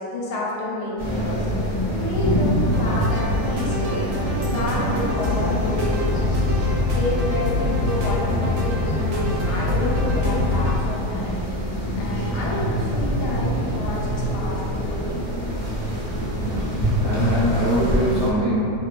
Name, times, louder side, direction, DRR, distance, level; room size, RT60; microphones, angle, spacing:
voice 1, 0.0-4.0 4.4-6.5 6.8-11.5 12.0-15.1, left 1 dB, 80° left, -5 dB, 1.2 m, -29 dB
sound 1, 1.0-18.3, equal, 55° left, 0.3 m, -25 dB
sound 2, 2.6-10.8, left 2 dB, 80° right, 1.1 m, -25 dB
voice 2, 16.9-18.7, right 1 dB, 55° right, -13 dB, 0.8 m, -23 dB
2.8 x 2.2 x 2.3 m, 2.4 s
omnidirectional pair, 1.8 m